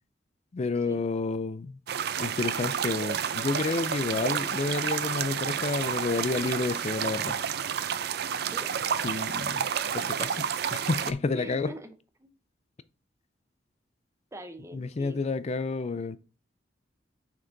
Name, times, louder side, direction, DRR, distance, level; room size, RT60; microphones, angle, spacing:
voice 1, 0.5-1.8 2.2-7.3 9.0-9.7 9.9-11.7 14.7-16.2, left 3 dB, 35° left, 0.4 m, -30 dB
sound 1, 1.9-11.1, right 8 dB, 60° right, 0.5 m, -30 dB
voice 2, 11.3-11.9 12.2-12.3 14.3-15.2, right 1 dB, 15° right, 0.7 m, -43 dB
6.1 x 4.5 x 3.8 m
head